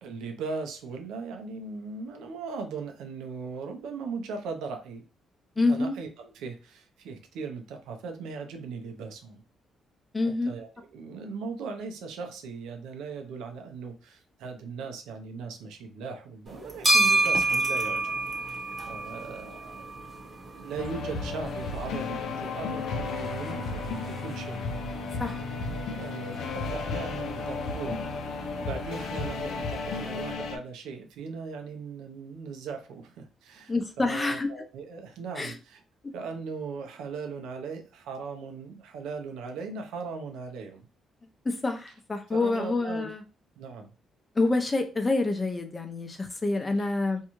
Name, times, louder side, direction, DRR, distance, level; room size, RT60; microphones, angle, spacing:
voice 1, 0.0-5.0 5.7-9.4 10.2-18.1 18.4-19.9 20.5-24.7 25.9-28.1 28.6-35.8 36.1-40.9 42.3-43.1 43.6-43.9 46.8-46.9, right 5 dB, 90° right, 4 dB, 0.6 m, -38 dB
voice 2, 5.6-5.9 10.1-10.5 25.2-25.4 33.7-34.5 35.4-35.5 41.4-43.2 44.4-47.2, left 3 dB, 25° left, 5 dB, 0.6 m, -27 dB
sound 1, 16.5-30.3, right 2 dB, 30° right, 0.9 m, -32 dB
sound 2, 20.8-30.6, left 4 dB, 80° left, 0.5 m, -33 dB
2.7 x 2.3 x 3.0 m, 0.32 s
cardioid pair, 90°, 0 cm